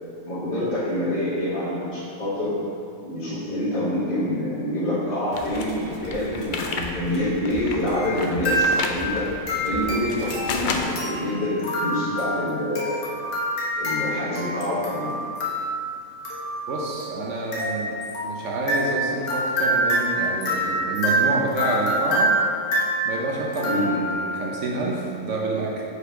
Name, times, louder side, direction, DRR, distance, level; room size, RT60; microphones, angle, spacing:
voice 1, 0.2-2.6 3.0-9.3 9.6-13.0 13.8-15.2 23.6-23.9, left 1 dB, 40° left, -11 dB, 1.6 m, -26 dB
sound 1, 5.3-6.9 7.3-9.0 9.7-11.1, left 4 dB, 80° left, 0.4 m, -31 dB
sound 2, 5.3-10.8, left 1 dB, 20° left, 0.7 m, -40 dB
sound 3, 7.9-8.2 8.4-9.1 9.5-24.4, right 1 dB, 65° left, 1.4 m, -26 dB
voice 2, 16.7-22.3 23.0-25.8, right 2 dB, 65° right, -3 dB, 1.0 m, -28 dB
5.0 x 4.8 x 4.9 m, 2.5 s
omnidirectional pair, 1.4 m